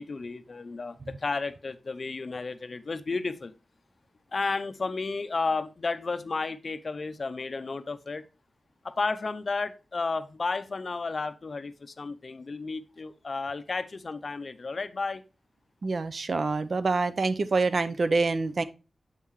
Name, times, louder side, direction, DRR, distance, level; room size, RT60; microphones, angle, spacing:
voice 1, 0.0-3.5 4.3-8.2 8.8-15.2, left 4 dB, 45° left, 0.5 m, -32 dB
voice 2, 15.8-18.6, right 3 dB, 55° right, 0.5 m, -26 dB
7.4 x 5.5 x 3.1 m
wide cardioid pair, 135°, 0 cm